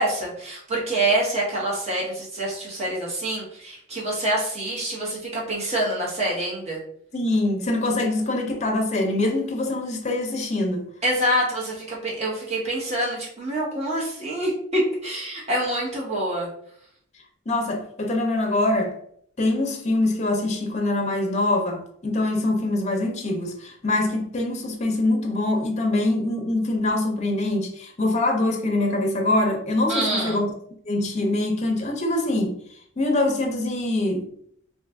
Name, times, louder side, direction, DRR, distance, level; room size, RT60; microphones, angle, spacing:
voice 1, 0.0-6.8 11.0-16.5 29.9-30.4, right 1 dB, 35° right, 1.1 m, -26 dB
voice 2, 7.1-10.9 17.5-18.9 19.4-30.5 30.9-32.6 33.0-34.3, left 2 dB, 35° left, 0.6 m, -24 dB
2.6 x 2.4 x 3.4 m
head